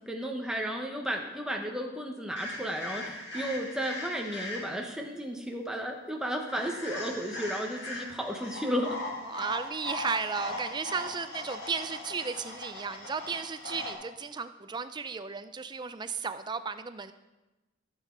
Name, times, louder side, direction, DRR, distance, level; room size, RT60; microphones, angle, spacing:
voice 1, 0.1-9.0, equal, 5° right, 1 dB, 1.0 m, -33 dB
sound 1, 2.4-4.9 6.5-13.9, left 1 dB, 60° left, 2.2 m, -39 dB
voice 2, 9.2-17.1, right 5 dB, 20° right, 11 dB, 0.4 m, -34 dB
14.0 x 7.3 x 3.9 m, 1.1 s
head